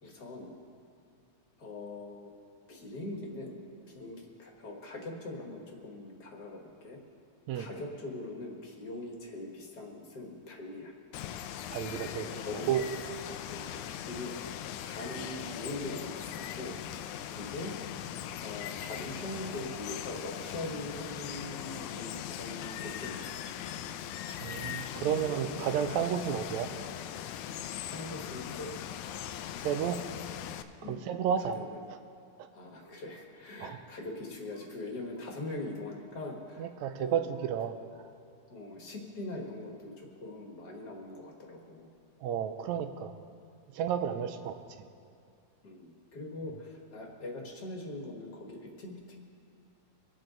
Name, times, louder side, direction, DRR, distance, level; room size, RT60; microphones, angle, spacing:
voice 1, 0.0-0.5 1.6-2.3 2.7-3.6 3.9-7.0 7.5-10.9 12.2-12.7 13.5-14.3 14.8-16.8 17.2-17.7 18.4-23.4 25.0-25.6 27.9-28.8 30.8-31.1 31.4-31.8 32.5-37.3 38.5-41.9 44.0-44.3 45.6-49.2, left 2 dB, 40° left, 0 dB, 1.7 m, -42 dB
Water, 11.1-30.6, left 10 dB, 80° left, 1.9 m, -40 dB
voice 2, 11.7-12.3 12.7-12.8 24.4-26.7 29.6-30.0 30.9-31.6 31.9-32.0 33.6-33.8 36.6-37.7 42.2-43.1 43.7-44.6, right 8 dB, 75° right, 8 dB, 1.8 m, -31 dB
24.5 x 9.1 x 3.9 m, 2.3 s
omnidirectional pair, 3.6 m